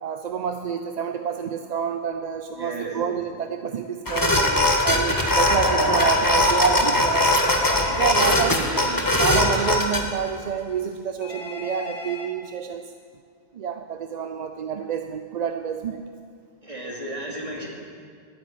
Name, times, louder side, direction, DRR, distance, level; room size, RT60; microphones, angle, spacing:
voice 1, 0.0-7.5 8.0-8.7 9.2-12.8 13.5-16.0, right 7 dB, 50° right, 7 dB, 0.6 m, -28 dB
voice 2, 2.6-3.0 7.8-9.2 16.6-17.7, right 1 dB, 30° right, -3 dB, 2.7 m, -34 dB
sound 1, 4.1-10.0, left 1 dB, 20° left, 1.3 m, -20 dB
Telephone, 7.2-8.3 11.2-12.3, left 2 dB, 75° left, 2.4 m, -37 dB
11.5 x 9.0 x 9.5 m, 2.1 s
omnidirectional pair, 1.1 m